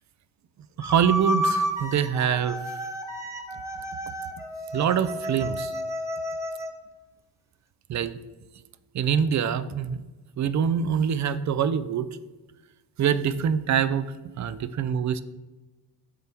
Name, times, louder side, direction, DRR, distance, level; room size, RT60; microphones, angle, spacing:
little E samplefile, 0.8-6.7, equal, 5° right, 0.9 m, -31 dB
voice 1, 0.8-2.6 4.7-5.7 7.9-8.2 8.9-10.0 10.4-12.1 13.0-15.2, right 8 dB, 45° right, 15 dB, 0.4 m, -25 dB
8.3 x 3.4 x 4.4 m, 1.2 s
cardioid pair, 65°, 40 cm